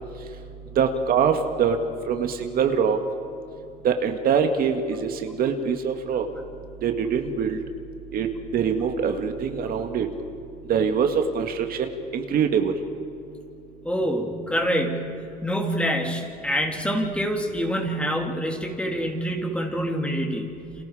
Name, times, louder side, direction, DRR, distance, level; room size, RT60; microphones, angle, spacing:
voice 1, 0.8-1.8 2.1-3.0 3.8-6.3 6.8-7.6 8.1-8.3 8.5-10.1 10.7-12.7, right 7 dB, 60° right, 6 dB, 1.9 m, -23 dB
voice 2, 13.8-20.5, equal, 5° left, 2 dB, 3.1 m, -26 dB
30.0 x 27.5 x 5.0 m, 2.8 s
cardioid pair, 110°, 17 cm